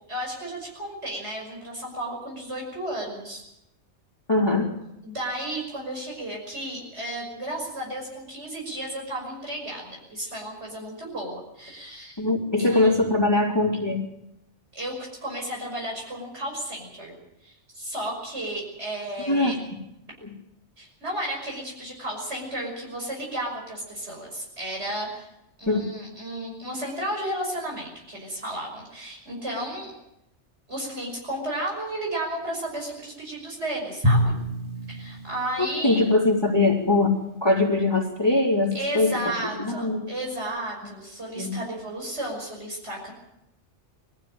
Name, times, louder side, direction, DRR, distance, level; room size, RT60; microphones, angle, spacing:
voice 1, 0.1-3.4 5.0-12.2 12.6-13.0 14.7-14.9 15.2-17.1 17.4-19.6 20.8-25.3 25.6-29.9 30.7-34.3 34.9-36.1 38.7-43.1, right 1 dB, 70° right, -1 dB, 6.3 m, -33 dB
voice 2, 4.3-4.7 12.2-14.0 19.3-19.6 20.2-20.3 25.7-25.9 35.6-37.1 37.4-39.2 39.6-40.1 41.4-41.5, left 2 dB, 20° left, -6 dB, 3.7 m, -22 dB
Drum, 34.0-36.4, equal, 25° right, 2.5 m, -26 dB
22.5 x 14.5 x 8.9 m, 0.85 s
omnidirectional pair, 1.2 m